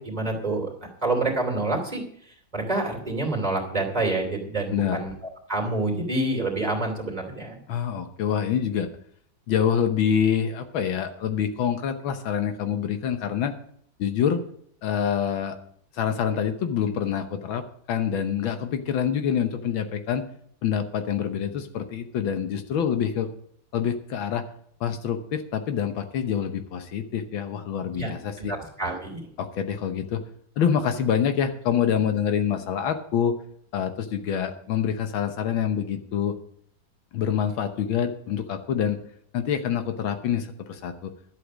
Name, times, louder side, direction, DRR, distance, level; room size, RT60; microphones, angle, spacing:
voice 1, 0.0-5.1 5.5-7.6 27.9-28.1 28.4-29.2, right 2 dB, 20° right, 2 dB, 2.8 m, -27 dB
voice 2, 7.7-8.9 9.5-13.5 14.0-14.4 14.8-15.6 15.9-17.6 17.9-20.2 20.6-23.3 23.7-24.4 24.8-28.5 29.4-30.2 30.6-33.3 33.7-36.4 37.1-39.0 39.3-41.1, left 8 dB, 80° left, 8 dB, 1.8 m, -26 dB
11.5 x 8.2 x 6.2 m, 0.64 s
omnidirectional pair, 2.2 m